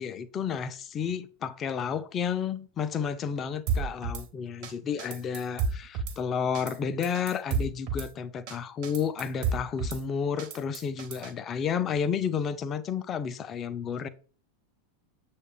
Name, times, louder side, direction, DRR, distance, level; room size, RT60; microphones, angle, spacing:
voice 1, 0.0-14.1, left 7 dB, 30° left, 0.4 m, -31 dB
Drum kit / Snare drum, 3.7-4.2 4.6-4.7 5.0-6.2 6.5-6.8 7.0-8.1 8.5-8.6 8.8-10.0 10.4-11.3, right 5 dB, 50° right, 0.6 m, -31 dB
6.3 x 2.3 x 3.4 m
figure-of-eight pair, 85°, 0 cm